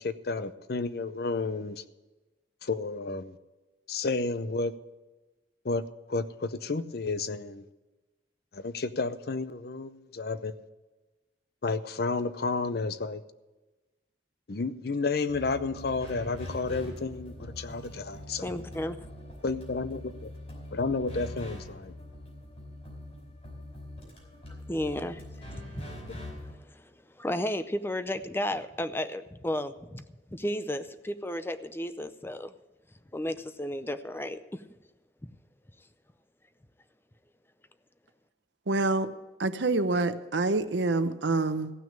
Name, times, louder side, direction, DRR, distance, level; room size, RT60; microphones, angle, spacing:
voice 1, 0.0-1.8 2.6-3.4 3.9-4.7 5.6-5.8 6.1-7.6 8.5-10.5 11.6-13.2 14.5-18.4 19.4-20.3 20.7-21.9, left 3 dB, 55° left, 0.6 m, -31 dB
sound 1, 15.3-26.5, left 1 dB, 40° left, 4.9 m, -43 dB
voice 2, 18.4-19.0 24.7-25.2 25.7-25.9 26.1-26.2 26.7-26.9 27.2-30.0 30.3-32.5 33.1-34.6, left 1 dB, 10° left, 0.5 m, -33 dB
voice 3, 38.7-39.1 39.4-41.7, right 3 dB, 80° right, 0.8 m, -26 dB
15.0 x 6.2 x 8.7 m
head